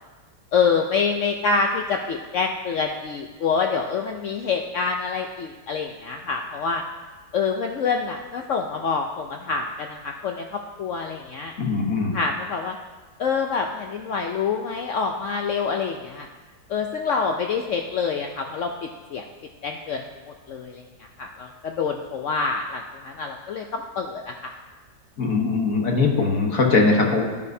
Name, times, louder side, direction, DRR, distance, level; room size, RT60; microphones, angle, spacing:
voice 1, 0.5-6.8 7.3-11.5 12.1-12.8 13.2-16.3 16.7-19.2 19.6-20.0 20.3-20.8 21.2-24.5, left 5 dB, 70° left, 3 dB, 0.7 m, -26 dB
voice 2, 11.6-12.2 25.2-27.2, left 3 dB, 55° left, 1 dB, 1.5 m, -21 dB
11.5 x 10.5 x 2.7 m, 1.3 s
omnidirectional pair, 1.8 m